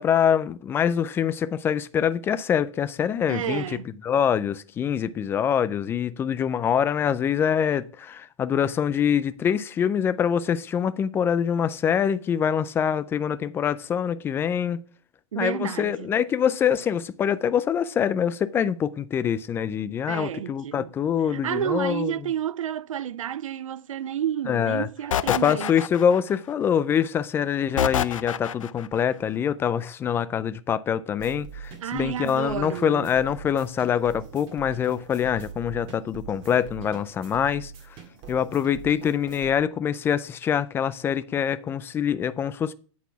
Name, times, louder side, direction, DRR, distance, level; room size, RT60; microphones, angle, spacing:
voice 1, 0.0-3.6 4.0-14.8 15.4-22.1 24.5-24.9 25.3-37.7 38.3-42.7, left 8 dB, 15° left, 0.3 m, -24 dB
voice 2, 3.3-3.9 15.3-16.1 20.1-20.9 21.3-25.7 31.8-33.1, right 10 dB, 90° right, 0.4 m, -30 dB
sound 1, 25.1-26.4 27.8-28.9, left 9 dB, 85° left, 0.5 m, -26 dB
sound 2, 31.2-39.5, right 7 dB, 35° right, 2.0 m, -43 dB
10.5 x 4.1 x 5.6 m
hypercardioid pair, 135°, 16 cm